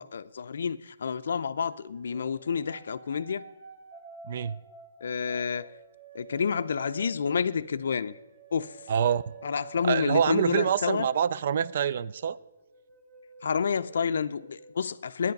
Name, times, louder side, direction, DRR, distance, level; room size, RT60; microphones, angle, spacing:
voice 1, 0.0-3.4 5.0-5.7 6.1-8.1 8.5-8.8 9.4-11.1 13.4-15.3, left 6 dB, 65° left, 0.4 m, -29 dB
sound 1, 1.7-10.8 11.1-14.7, right 5 dB, 25° right, 1.3 m, -50 dB
voice 2, 4.3-4.6 8.9-9.3 9.8-12.4, right 8 dB, 45° right, 0.3 m, -26 dB
9.7 x 9.5 x 5.3 m
hypercardioid pair, 165°, 0 cm